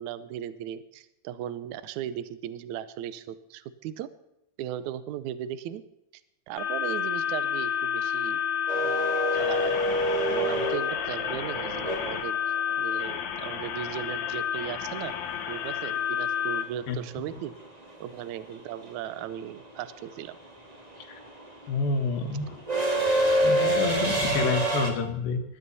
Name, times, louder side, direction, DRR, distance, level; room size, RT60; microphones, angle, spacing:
voice 1, 0.0-4.1 4.6-5.8 6.5-8.4 8.7-9.8 10.3-12.4 12.8-15.1 15.5-17.5 18.0-20.4 22.9-23.1, right 11 dB, 70° right, 14 dB, 1.9 m, -37 dB
sound 1, 6.6-16.6, left 8 dB, 60° left, 2.4 m, -30 dB
sound 2, 8.7-12.7 15.1-15.2 16.5-16.8 17.1-24.9, right 1 dB, 15° right, 1.4 m, -27 dB
voice 2, 21.7-22.6 23.4-25.4, left 4 dB, 85° left, 6 dB, 3.3 m, -28 dB
19.5 x 12.5 x 4.1 m, 0.86 s
omnidirectional pair, 4.0 m